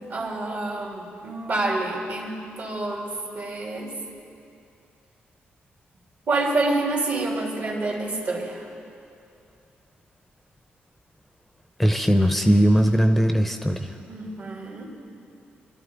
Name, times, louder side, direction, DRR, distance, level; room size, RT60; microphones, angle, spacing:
voice 1, 0.1-3.9 6.3-8.6 14.1-14.9, right 2 dB, 60° right, -2 dB, 3.2 m, -28 dB
voice 2, 11.8-13.8, equal, 5° left, 6 dB, 0.8 m, -19 dB
21.5 x 12.5 x 4.0 m, 2.6 s
supercardioid pair, 55°, 4 cm